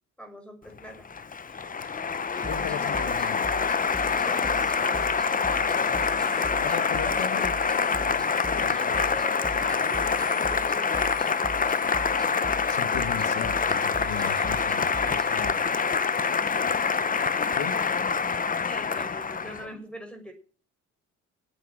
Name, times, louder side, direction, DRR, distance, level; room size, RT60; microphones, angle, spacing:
voice 1, 0.2-1.1 1.5-1.7 4.2-5.2 5.9-7.6 8.5-11.2 16.4-16.7 18.0-20.3, equal, 5° left, 6.1 m, -43 dB
Applause, 0.8-19.7, left 5 dB, 30° left, 0.8 m, -26 dB
voice 2, 1.8-3.5 5.9-6.1 6.6-7.5 8.0-8.8 12.7-15.6 17.5-17.8, left 9 dB, 85° left, 1.7 m, -37 dB
sound 1, 2.3-15.5, right 2 dB, 10° right, 1.0 m, -40 dB
10.0 x 8.6 x 8.7 m
cardioid pair, 90°, 30 cm